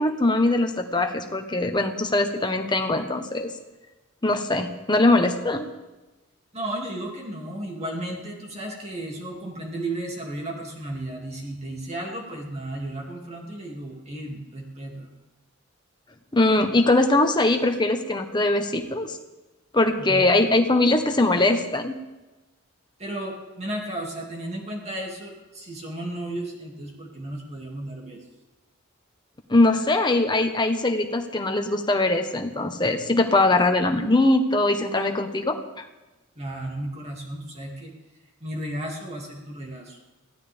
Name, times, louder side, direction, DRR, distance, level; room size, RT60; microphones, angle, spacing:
voice 1, 0.0-3.5 4.2-5.7 16.3-19.2 19.7-22.0 29.5-35.6, left 2 dB, 20° left, 5 dB, 1.3 m, -21 dB
voice 2, 6.5-15.1 20.0-20.2 23.0-28.2 36.4-37.9 38.4-40.0, right 1 dB, 30° right, -1 dB, 2.5 m, -34 dB
23.0 x 16.0 x 3.5 m, 1.1 s
head